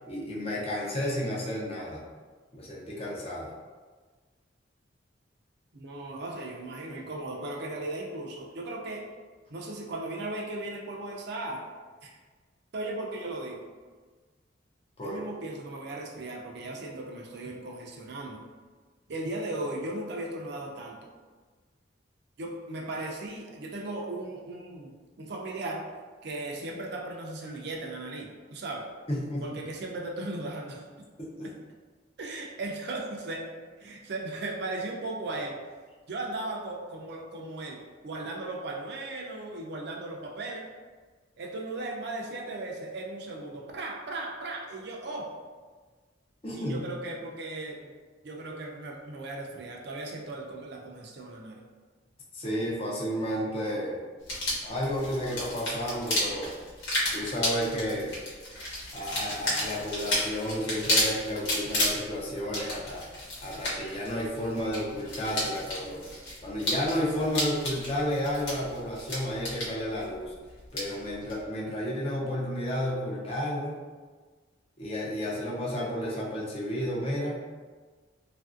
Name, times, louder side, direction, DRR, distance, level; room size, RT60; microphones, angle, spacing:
voice 1, 0.1-2.0 2.5-3.5 15.0-15.2 29.1-29.5 31.2-31.5 46.4-46.8 52.3-54.0 54.6-56.5 57.1-58.2 58.9-63.0 63.4-66.0 66.4-70.3 70.7-73.8 74.8-77.4, equal, 30° left, -4 dB, 0.5 m, -32 dB
voice 2, 5.7-9.0 9.5-11.6 12.0-12.1 12.7-13.7 15.0-18.4 19.1-21.1 22.4-25.8 26.2-28.8 29.4-30.8 32.2-33.4 33.8-35.5 36.1-40.7 41.4-45.3 46.5-47.9 48.2-51.6, right 2 dB, 60° right, -1 dB, 0.4 m, -37 dB
sound 1, 54.2-71.4, left 1 dB, 65° left, 1.0 m, -32 dB
3.1 x 2.5 x 2.4 m, 1.4 s
head